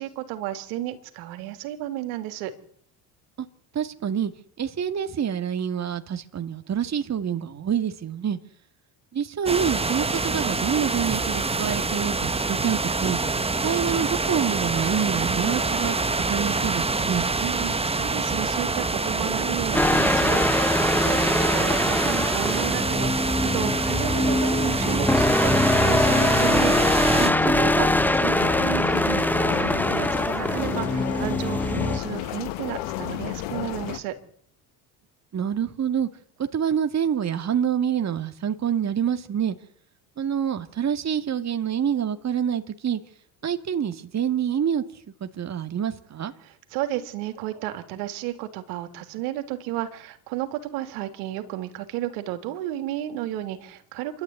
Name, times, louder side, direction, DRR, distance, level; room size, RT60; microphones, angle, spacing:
voice 1, 0.0-2.5 17.4-26.8 27.1-34.1 46.4-54.2, right 13 dB, 80° right, 3.3 m, -33 dB
voice 2, 3.7-4.3 4.6-8.4 9.1-13.2 13.6-16.0 16.3-17.3 27.2-27.7 35.3-36.1 36.5-39.5 40.2-43.0 43.4-44.8 45.2-46.3, right 8 dB, 35° right, 2.2 m, -26 dB
sound 1, 9.5-27.3, right 3 dB, 15° right, 1.4 m, -26 dB
sound 2, 19.7-32.0, left 1 dB, 5° left, 1.1 m, -23 dB
sound 3, 25.8-34.0, left 14 dB, 80° left, 2.0 m, -31 dB
27.0 x 12.5 x 9.6 m
supercardioid pair, 80°, 45 cm